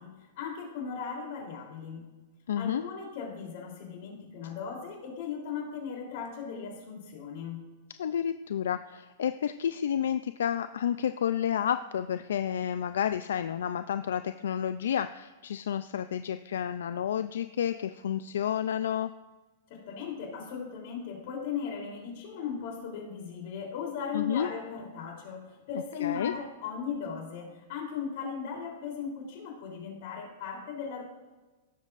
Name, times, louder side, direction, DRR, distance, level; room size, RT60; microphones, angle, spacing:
voice 1, 0.0-2.0 2.6-7.6 19.7-31.0, left 6 dB, 55° left, 0 dB, 3.3 m, -37 dB
voice 2, 2.5-2.8 8.0-19.1 24.1-24.5 25.7-26.3, left 9 dB, 80° left, 11 dB, 0.3 m, -30 dB
17.0 x 7.4 x 2.5 m, 1.2 s
hypercardioid pair, 135°, 0 cm